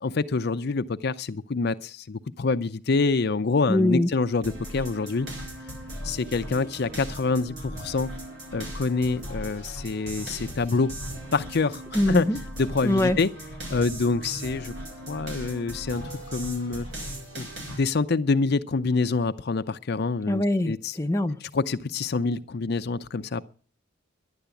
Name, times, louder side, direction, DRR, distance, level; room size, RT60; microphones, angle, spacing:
voice 1, 0.0-5.3 6.0-8.1 8.5-10.9 11.3-12.3 12.6-13.3 13.7-14.7 15.1-16.0 16.3-16.9 17.4-21.0 21.5-23.4, left 4 dB, 55° left, 0.5 m, -26 dB
voice 2, 3.7-4.1 11.9-12.4 12.8-13.2 20.3-21.4, left 1 dB, 15° left, 0.7 m, -23 dB
sound 1, 4.4-17.8, equal, 70° right, 8.0 m, -38 dB
11.5 x 10.5 x 8.3 m
head